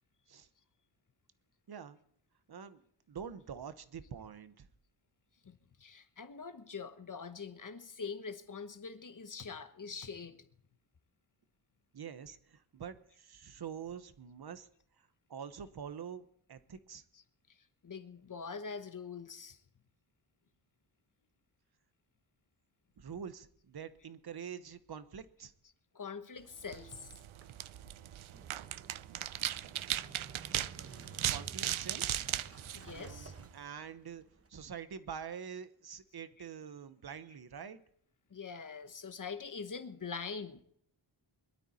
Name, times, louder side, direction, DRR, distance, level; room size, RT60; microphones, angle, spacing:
voice 1, 1.7-2.0 2.5-2.8 3.1-4.7 11.9-14.7 15.0-17.0 23.0-25.5 31.3-32.3 32.9-34.2 34.5-37.8, right 7 dB, 55° right, 1.0 m, -46 dB
voice 2, 5.4-10.4 17.1-17.2 17.8-19.6 25.6-27.1 32.7-33.3 38.3-40.6, left 5 dB, 40° left, 1.1 m, -44 dB
sound 1, 26.6-33.6, right 12 dB, 90° right, 0.6 m, -38 dB
Motorcycle / Engine starting, 27.3-34.5, right 4 dB, 30° right, 0.9 m, -53 dB
22.0 x 12.5 x 4.3 m
wide cardioid pair, 160°, 47 cm